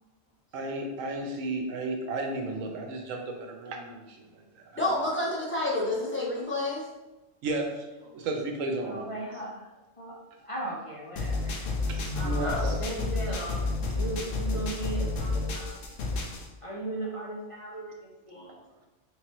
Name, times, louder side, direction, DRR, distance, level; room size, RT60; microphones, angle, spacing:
voice 1, 0.5-5.0 7.4-7.9 8.1-9.1 11.9-12.8, right 2 dB, 90° right, 3 dB, 1.0 m, -34 dB
voice 2, 4.8-6.8 12.4-12.7 18.3-18.5, left 2 dB, 10° left, -5 dB, 0.7 m, -29 dB
voice 3, 8.8-9.7 10.0-11.7 12.1-13.6 13.9-15.9 16.6-18.6, right 2 dB, 45° left, -5 dB, 0.4 m, -37 dB
sound 1, 11.2-16.5, left 3 dB, 75° left, 1.0 m, -30 dB
3.6 x 3.1 x 2.9 m, 1.1 s
omnidirectional pair, 1.3 m